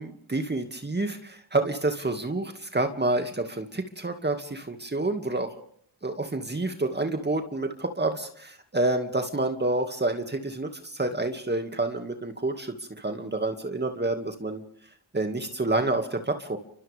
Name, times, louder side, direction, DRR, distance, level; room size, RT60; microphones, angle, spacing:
voice 1, 0.0-5.5 6.0-14.6 15.1-16.6, right 2 dB, 25° right, 5 dB, 2.3 m, -28 dB
29.5 x 25.0 x 3.7 m, 0.62 s
cardioid pair, 60°, 43 cm